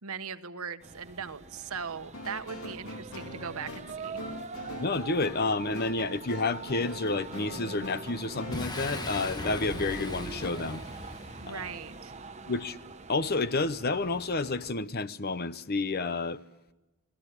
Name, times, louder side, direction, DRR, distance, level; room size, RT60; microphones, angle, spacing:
voice 1, 0.0-4.2 11.4-12.1, right 6 dB, 80° right, 1.2 m, -39 dB
sound 1, 0.8-14.7, right 4 dB, 30° right, 0.9 m, -44 dB
sound 2, 2.1-10.5, left 1 dB, 70° left, 2.1 m, -43 dB
voice 2, 4.8-10.8 11.5-11.6 12.5-12.8 13.1-16.4, left 3 dB, 45° left, 0.8 m, -30 dB
Boom, 8.5-12.1, left 1 dB, 20° left, 1.5 m, -39 dB
28.0 x 18.5 x 8.5 m
head